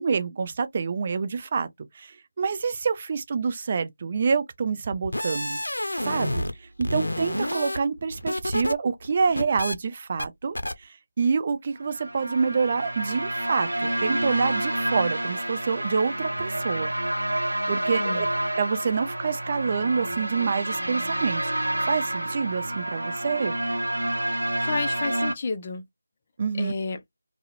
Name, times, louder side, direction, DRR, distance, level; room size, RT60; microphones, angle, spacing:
voice 1, 0.0-1.7 1.9-5.6 6.1-10.9 11.2-16.9 17.3-18.3 18.5-23.6 26.4-26.7, right 5 dB, 30° right, 0.4 m, -27 dB
sound 1, 4.9-6.5 6.8-8.7 9.0-9.8 10.2-10.3 10.6-10.7, left 1 dB, 85° left, 0.5 m, -29 dB
sound 2, 11.8-25.3, right 1 dB, 80° right, 0.6 m, -28 dB
voice 2, 18.0-18.3 24.3-25.8 26.6-27.0, left 4 dB, 30° left, 0.4 m, -31 dB
2.3 x 2.0 x 2.9 m
figure-of-eight pair, 165°, 0 cm